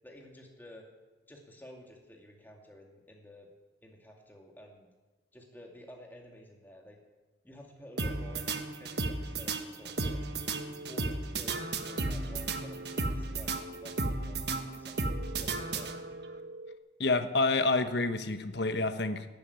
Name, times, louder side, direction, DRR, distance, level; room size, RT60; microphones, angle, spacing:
voice 1, 0.0-0.9 1.3-3.5 3.8-4.9 5.3-7.0 7.4-10.2 10.9-15.9, left 1 dB, 10° left, 0 dB, 2.3 m, -52 dB
sound 1, 8.0-16.3, right 3 dB, 60° right, 1.3 m, -34 dB
sound 2, 10.4-10.9 11.4-11.9 12.5-13.0 13.5-14.0 15.1-16.8, right 1 dB, 90° right, 1.4 m, -46 dB
voice 2, 17.0-19.3, left 3 dB, 60° left, 10 dB, 1.1 m, -28 dB
13.0 x 10.0 x 9.5 m, 1.2 s
head